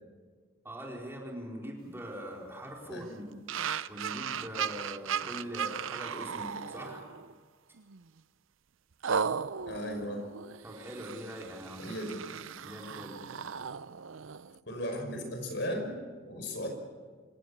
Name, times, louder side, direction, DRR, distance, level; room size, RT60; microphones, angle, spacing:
voice 1, 0.6-3.4 3.9-7.1 10.6-11.9 12.6-13.2, equal, 10° right, -1 dB, 4.5 m, -42 dB
sound 1, 3.5-7.3 7.8-8.0 9.0-14.6, right 7 dB, 80° right, 0.6 m, -36 dB
voice 2, 9.7-10.3 11.8-12.2 14.7-16.0 16.2-16.7, equal, 60° left, 4 dB, 6.1 m, -36 dB
27.0 x 17.0 x 8.6 m, 1.5 s
head